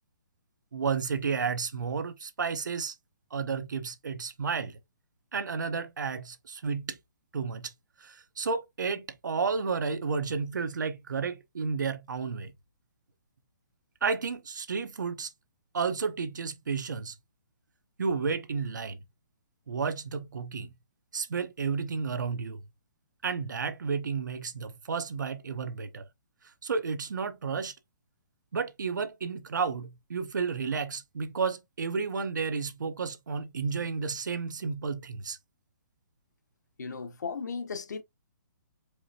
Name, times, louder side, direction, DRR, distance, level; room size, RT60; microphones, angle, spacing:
voice 1, 0.7-2.9 3.3-4.8 5.3-7.0 7.3-7.7 8.0-12.5 14.0-15.3 15.7-17.1 18.0-19.0 19.7-20.7 21.1-22.6 23.2-26.1 26.6-27.7 28.5-35.4, right 5 dB, 90° right, 1.0 m, -32 dB
voice 2, 36.8-38.0, left 5 dB, 70° left, 1.1 m, -36 dB
4.8 x 3.3 x 2.8 m
hypercardioid pair, 175°, 10 cm